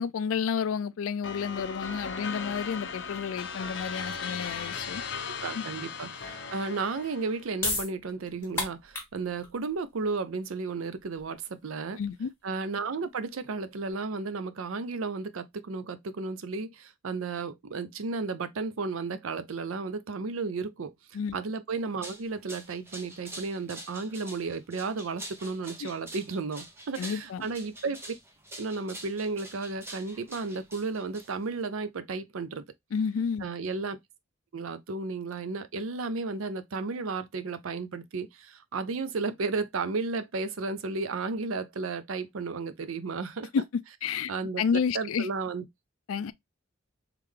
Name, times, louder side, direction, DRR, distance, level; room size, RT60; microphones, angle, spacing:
voice 1, 0.0-5.0 5.5-5.6 12.0-12.3 21.1-21.4 25.8-25.9 27.0-27.4 32.9-33.5 43.5-43.6 44.0-44.3 44.6-45.3 46.1-46.3, left 6 dB, 75° left, 0.4 m, -30 dB
sound 1, 1.2-7.5, left 5 dB, 55° left, 0.7 m, -37 dB
voice 2, 5.3-12.0 12.4-28.1 28.6-32.6 33.4-34.0 34.5-43.5 44.3-44.6 44.9-45.7, right 4 dB, 80° right, 0.5 m, -33 dB
sound 2, 7.2-13.9, left 2 dB, 10° left, 1.4 m, -37 dB
sound 3, 21.8-31.6, right 1 dB, 10° right, 0.8 m, -46 dB
3.6 x 3.3 x 3.2 m
head